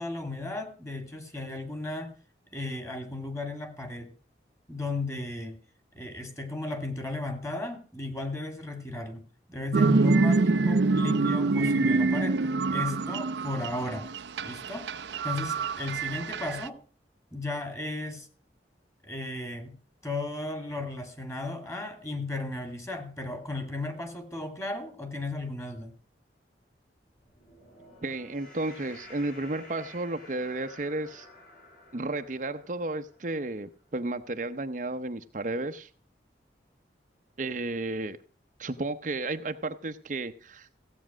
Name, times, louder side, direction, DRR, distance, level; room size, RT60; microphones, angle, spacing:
voice 1, 0.0-2.1 2.5-4.1 4.7-5.6 5.9-9.2 9.5-12.4 12.7-14.1 14.4-14.9 15.2-16.8 17.3-18.3 19.0-19.8 20.0-25.9, left 2 dB, 15° left, 7 dB, 2.6 m, -35 dB
sound 1, 9.7-16.7, right 3 dB, 80° right, 0.6 m, -26 dB
sound 2, 27.1-33.6, left 1 dB, 50° left, 6.5 m, -51 dB
voice 2, 28.0-31.3 31.9-35.9 37.4-38.2 38.6-40.8, right 2 dB, 45° right, 7 dB, 0.7 m, -33 dB
16.0 x 8.5 x 6.2 m, 0.40 s
head